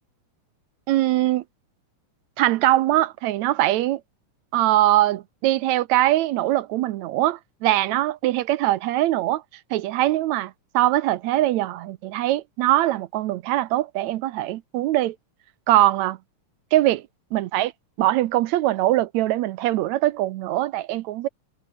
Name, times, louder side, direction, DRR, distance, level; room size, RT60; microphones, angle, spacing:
voice 1, 0.9-1.4 2.4-4.0 4.5-9.4 9.7-15.1 15.7-16.2 16.7-17.0 17.3-17.7 18.0-21.3, right 15 dB, 75° right, 1.8 m, -22 dB
omnidirectional pair, 3.7 m